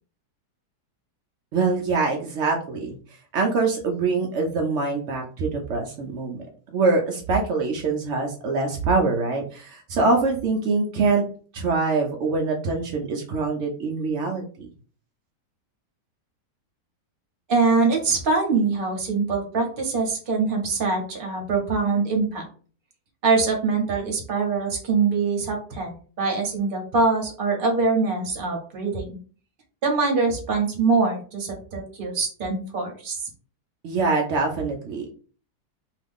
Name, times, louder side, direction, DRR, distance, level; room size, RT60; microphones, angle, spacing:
voice 1, 1.5-3.0 3.3-6.4 6.7-11.2 11.5-14.7 33.8-35.1, right 3 dB, 80° right, 1 dB, 0.6 m, -24 dB
voice 2, 17.5-22.5 23.2-29.2 29.8-33.3, right 4 dB, 45° right, 1 dB, 0.7 m, -23 dB
2.9 x 2.3 x 3.5 m, 0.41 s
omnidirectional pair, 1.8 m